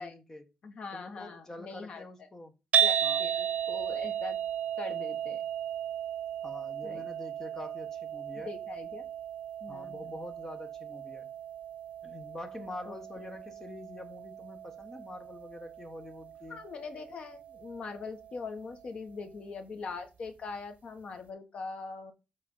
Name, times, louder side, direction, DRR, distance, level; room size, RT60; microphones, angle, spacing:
voice 1, 0.0-0.4 0.9-2.5 3.0-3.3 6.4-8.5 9.7-11.3 12.0-16.6, left 2 dB, 20° left, 1.3 m, -45 dB
voice 2, 0.6-2.0 2.8-4.4 4.8-5.4 6.8-7.0 8.5-9.1 9.6-10.1 12.8-13.3 16.5-22.1, left 4 dB, 50° left, 1.4 m, -42 dB
sound 1, 2.7-19.0, right 9 dB, 65° right, 1.0 m, -35 dB
7.6 x 4.1 x 5.5 m
wide cardioid pair, 175°, 3 cm